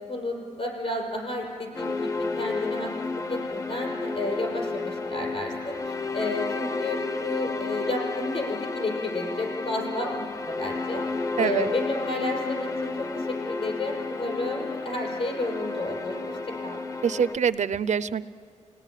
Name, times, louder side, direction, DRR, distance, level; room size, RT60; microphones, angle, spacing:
voice 1, 0.0-11.0 11.4-16.8, left 2 dB, 50° left, 1 dB, 5.6 m, -32 dB
sound 1, 1.7-17.4, left 3 dB, 25° left, 0.7 m, -32 dB
voice 2, 11.4-11.7 17.0-18.2, right 7 dB, 75° right, 14 dB, 0.6 m, -25 dB
28.5 x 18.0 x 9.9 m, 2.5 s
wide cardioid pair, 140°, 12 cm